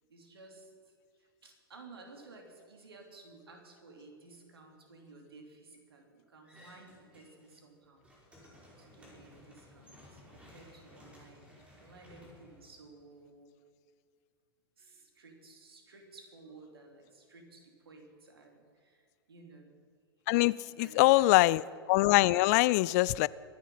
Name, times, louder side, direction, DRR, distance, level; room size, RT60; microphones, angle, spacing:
voice 1, 0.1-0.9 1.2-8.0 8.8-13.5 14.8-19.7 20.7-21.6, right 3 dB, 70° right, 3 dB, 3.2 m, -55 dB
sound 1, 6.4-7.6 7.9-13.2, left 1 dB, 10° right, 5.0 m, -57 dB
voice 2, 20.3-21.6 21.9-23.3, left 19 dB, 40° left, 21 dB, 0.3 m, -23 dB
23.5 x 10.0 x 5.6 m, 2.1 s
figure-of-eight pair, 100°, 13 cm